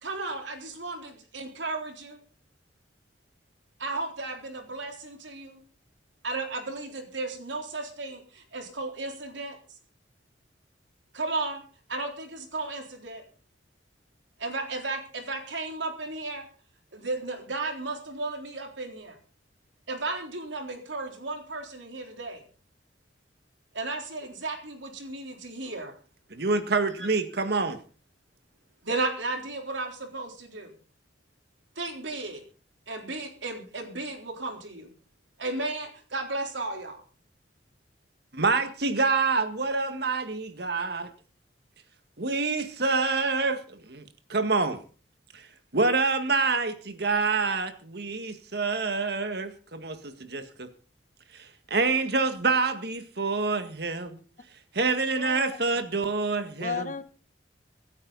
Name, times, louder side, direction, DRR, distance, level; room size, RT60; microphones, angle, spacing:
voice 1, 0.0-2.2 3.8-5.6 6.2-9.6 11.1-11.6 11.9-13.2 14.4-16.5 16.9-19.2 19.9-22.4 23.7-25.9 27.0-27.1 28.8-30.7 31.8-32.4 32.9-34.9 35.4-37.0, right 3 dB, 90° right, 3.8 m, -34 dB
voice 2, 26.3-27.8 38.3-41.1 42.2-44.0 44.3-44.8 45.3-45.5 45.7-50.7 51.3-54.2 54.7-56.9, right 4 dB, 60° right, 1.8 m, -27 dB
voice 3, 55.1-55.6 56.6-57.0, left 5 dB, 45° left, 1.0 m, -34 dB
25.0 x 9.7 x 4.1 m
head